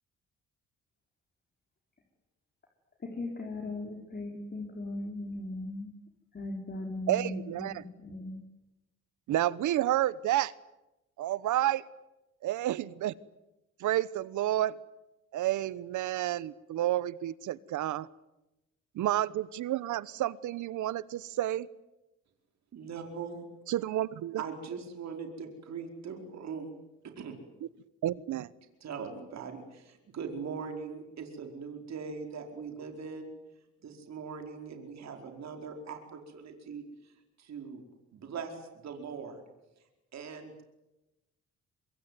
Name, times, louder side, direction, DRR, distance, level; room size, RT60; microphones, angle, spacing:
voice 1, 3.0-5.9 6.3-8.4, left 2 dB, 35° left, 0 dB, 4.9 m, -38 dB
voice 2, 7.1-7.8 9.3-10.5 11.2-11.8 12.4-13.1 13.8-14.8 15.3-18.1 18.9-21.7 23.7-24.4 28.0-28.5, right 13 dB, 80° right, 20 dB, 1.1 m, -30 dB
voice 3, 22.7-23.4 24.4-26.7 27.2-27.3 28.8-33.3 33.8-37.8 38.1-39.4 40.1-40.6, right 5 dB, 60° right, 4 dB, 4.7 m, -41 dB
25.5 x 23.0 x 9.5 m, 0.98 s
cardioid pair, 90°, 30 cm